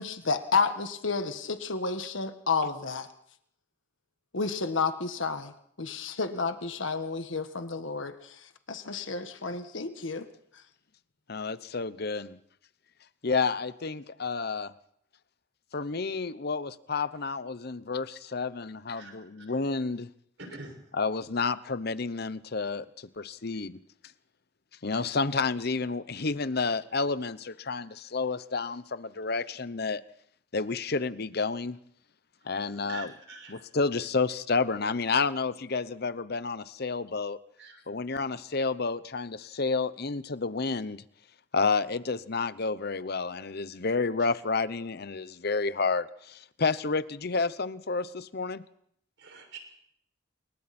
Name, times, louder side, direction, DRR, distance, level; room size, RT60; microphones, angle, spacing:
voice 1, 0.0-3.1 4.3-5.5 5.8-10.3, left 4 dB, 75° left, 8 dB, 1.6 m, -31 dB
voice 2, 11.3-12.4 13.2-14.7 15.7-20.1 20.9-23.8 24.8-30.0 30.5-31.8 32.4-33.1 33.5-37.4 37.9-41.0 41.5-48.6, left 4 dB, 55° left, 15 dB, 0.8 m, -30 dB
voice 3, 19.0-19.5 20.4-20.8 32.8-33.6 37.6-37.8 49.2-49.6, right 4 dB, 65° right, 4 dB, 6.0 m, -45 dB
28.0 x 23.0 x 4.4 m, 0.69 s
head